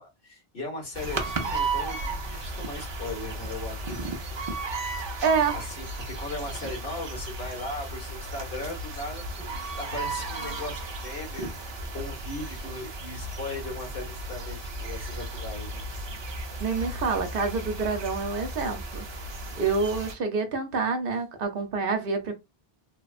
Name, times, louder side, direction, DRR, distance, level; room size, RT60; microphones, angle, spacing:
voice 1, 0.0-4.4 5.5-15.8, left 2 dB, 75° left, 1.6 m, -38 dB
sound 1, 0.9-20.1, right 2 dB, 40° right, 0.4 m, -35 dB
voice 2, 5.0-5.5 16.6-19.1 19.6-22.3, right 4 dB, 65° right, 0.8 m, -27 dB
3.0 x 2.1 x 2.3 m
omnidirectional pair, 1.0 m